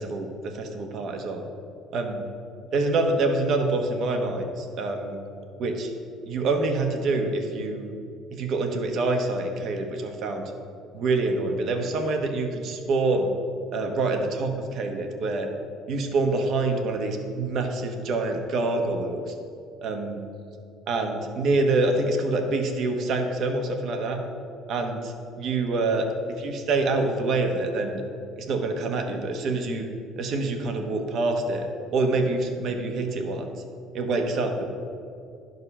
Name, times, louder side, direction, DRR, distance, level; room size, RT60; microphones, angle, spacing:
voice 1, 0.0-1.5 1.9-2.2 2.7-5.2 5.6-5.9 6.3-7.9 8.3-10.4 10.9-13.3 13.7-15.5 15.9-19.3 19.8-20.2 20.9-24.2 24.7-26.1 26.4-28.0 28.5-29.9 30.2-33.5 33.9-34.7, right 3 dB, 55° right, 5 dB, 1.1 m, -26 dB
11.0 x 5.4 x 5.4 m, 2.5 s
cardioid pair, 125°, 0 cm